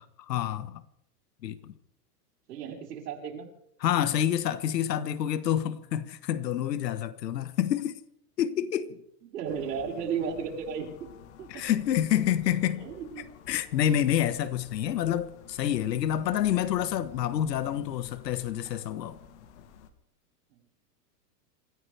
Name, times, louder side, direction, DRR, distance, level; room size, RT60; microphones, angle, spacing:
voice 1, 0.3-0.8 1.4-1.7 3.8-8.0 8.4-9.0 11.5-12.9 13.5-19.2, left 10 dB, 90° left, 1.4 m, -28 dB
voice 2, 2.5-3.5 9.2-11.1 11.4-11.6 12.8-13.2 14.8-14.9 20.5-20.6, right 7 dB, 80° right, 4.8 m, -34 dB
sound 1, 9.4-19.9, left 8 dB, 45° left, 1.6 m, -51 dB
27.5 x 14.5 x 3.5 m
supercardioid pair, 170°, 48 cm